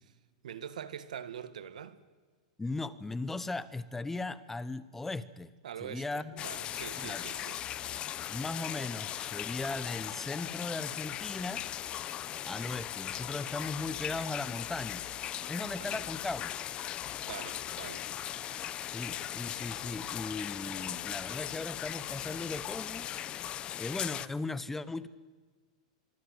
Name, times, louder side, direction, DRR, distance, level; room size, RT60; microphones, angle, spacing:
voice 1, 0.4-2.0 5.6-7.6 15.8-16.1 17.2-18.1, right 9 dB, 90° right, 2.0 m, -44 dB
voice 2, 2.6-5.5 5.8-6.4 7.0-7.7 8.3-11.7 12.5-15.0 15.5-16.5 18.9-23.1 23.8-25.1, left 3 dB, 5° left, 1.0 m, -38 dB
sound 1, 6.4-24.3, left 11 dB, 25° left, 0.8 m, -38 dB
25.0 x 24.5 x 8.1 m
supercardioid pair, 150°, 4 cm